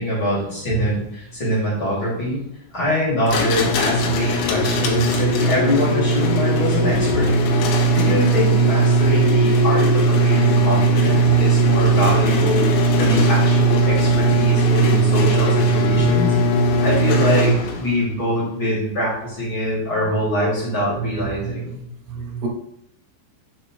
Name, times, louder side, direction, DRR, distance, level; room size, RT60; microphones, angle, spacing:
voice 1, 0.0-2.4 2.7-7.4 7.9-16.3 16.8-21.8, left 1 dB, 35° left, -7 dB, 2.8 m, -24 dB
sound 1, 3.3-18.0, right 2 dB, 85° left, 3.3 m, -18 dB
voice 2, 7.1-7.4 11.2-11.3 16.0-16.9 22.1-22.5, right 5 dB, 75° right, 1 dB, 3.0 m, -23 dB
9.4 x 6.6 x 3.2 m, 0.74 s
omnidirectional pair, 5.1 m